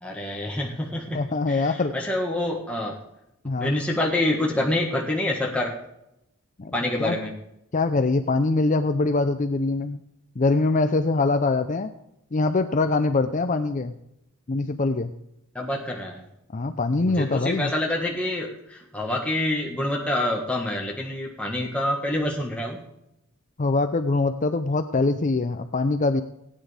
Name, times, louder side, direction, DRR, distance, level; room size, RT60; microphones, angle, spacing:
voice 1, 0.0-1.2 1.5-3.0 3.6-5.7 6.7-7.3 15.5-16.2 17.0-22.8, left 1 dB, 5° left, -2 dB, 1.5 m, -27 dB
voice 2, 1.1-1.9 3.4-3.7 6.6-6.7 7.0-7.2 7.7-10.0 10.4-11.9 12.3-14.0 14.5-15.1 16.5-17.7 23.6-26.2, left 3 dB, 35° left, 9 dB, 0.6 m, -23 dB
18.0 x 9.5 x 3.4 m, 0.83 s
head